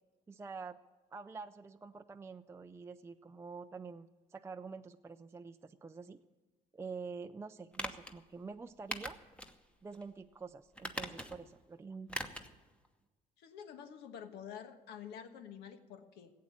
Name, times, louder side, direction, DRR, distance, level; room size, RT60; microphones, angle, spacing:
voice 1, 0.3-0.8 1.1-6.2 6.7-9.2 9.8-12.2, right 4 dB, 15° right, 8 dB, 0.4 m, -47 dB
sound 1, 7.7-8.1 8.9-9.6 9.9-10.0 10.8-11.5 12.1-12.5 12.8-12.9, equal, 5° left, 1.0 m, -41 dB
voice 2, 13.4-16.3, left 8 dB, 80° left, 8 dB, 1.3 m, -48 dB
16.0 x 8.3 x 8.5 m, 1.3 s
cardioid pair, 110°, 17 cm